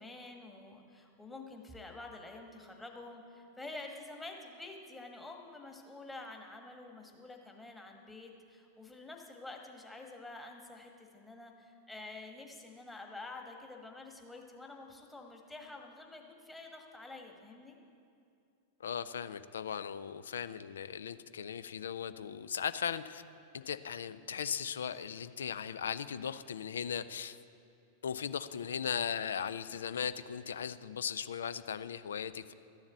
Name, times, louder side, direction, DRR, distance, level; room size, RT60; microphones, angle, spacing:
voice 1, 0.0-17.8, left 2 dB, 10° left, 2 dB, 1.5 m, -48 dB
voice 2, 18.8-23.2 23.5-27.4 28.0-32.5, left 7 dB, 65° left, 14 dB, 0.4 m, -38 dB
13.0 x 7.2 x 8.1 m, 2.5 s
figure-of-eight pair, 90°, 0 cm